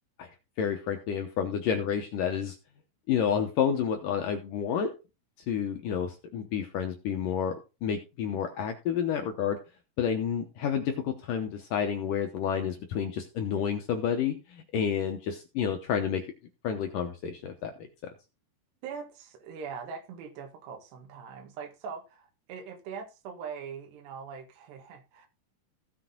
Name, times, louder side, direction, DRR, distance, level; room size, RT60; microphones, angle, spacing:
voice 1, 0.6-2.6 3.1-4.9 5.5-9.6 10.0-16.2 16.6-17.9, left 8 dB, 75° left, 2.0 m, -30 dB
voice 2, 18.8-25.3, right 6 dB, 75° right, 3.8 m, -42 dB
16.0 x 6.1 x 3.8 m
omnidirectional pair, 5.0 m